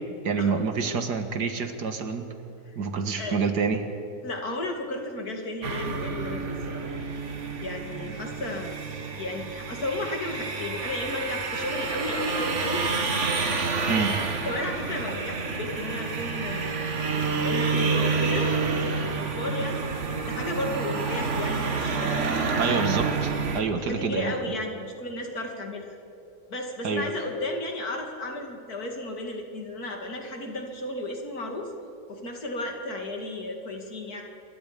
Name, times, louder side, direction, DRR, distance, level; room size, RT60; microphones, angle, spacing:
voice 1, 0.2-2.3 2.8-3.8 13.9-14.1 22.6-24.3 26.8-27.1, right 5 dB, 75° right, 7 dB, 2.2 m, -27 dB
voice 2, 4.2-6.9 7.6-8.8 9.2-12.9 13.7-14.1 14.4-17.1 17.4-22.3 22.6-22.9 23.7-26.0 26.5-31.7 32.1-34.2, left 1 dB, 65° left, 3 dB, 3.0 m, -34 dB
sound 1, 5.6-23.6, right 4 dB, 45° right, 1.7 m, -29 dB
27.0 x 22.0 x 5.2 m, 2.8 s
omnidirectional pair, 1.8 m